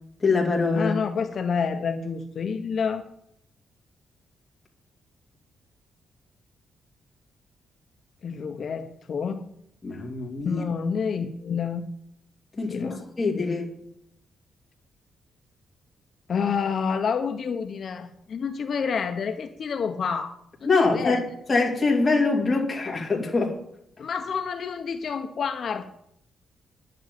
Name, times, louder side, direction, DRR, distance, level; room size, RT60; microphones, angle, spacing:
voice 1, 0.2-0.9 9.8-10.6 12.6-12.9 13.2-13.7 20.6-21.2 21.5-23.5, left 3 dB, 15° left, -1 dB, 2.8 m, -23 dB
voice 2, 0.7-3.0 8.2-9.5 10.4-11.9 12.7-13.0 16.3-20.3 20.6-21.2 24.0-25.9, left 6 dB, 40° left, 6 dB, 0.9 m, -28 dB
10.5 x 7.8 x 9.3 m, 0.73 s
wide cardioid pair, 180°, 0 cm